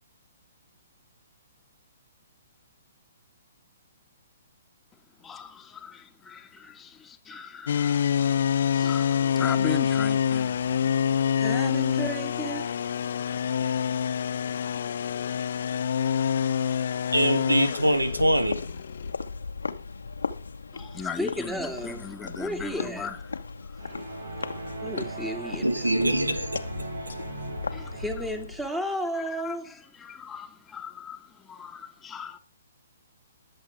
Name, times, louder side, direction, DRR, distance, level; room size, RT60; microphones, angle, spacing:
voice 1, 5.2-8.0 8.7-10.6 20.7-23.4 23.7-23.8 27.7-27.9 29.1-32.4, left 7 dB, 10° left, 1.7 m, -39 dB
sound 1, 7.7-19.1, left 8 dB, 55° left, 0.6 m, -26 dB
voice 2, 11.4-12.7 21.2-22.1 22.4-23.1 24.8-25.9 27.9-29.8, equal, 5° right, 2.3 m, -33 dB
voice 3, 17.1-18.6 25.6-26.6, right 1 dB, 90° right, 2.0 m, -23 dB
sound 2, 17.8-28.7, left 4 dB, 75° left, 1.3 m, -37 dB
sound 3, 23.8-28.4, right 2 dB, 70° right, 4.0 m, -38 dB
20.5 x 7.7 x 3.6 m
figure-of-eight pair, 125°, 0 cm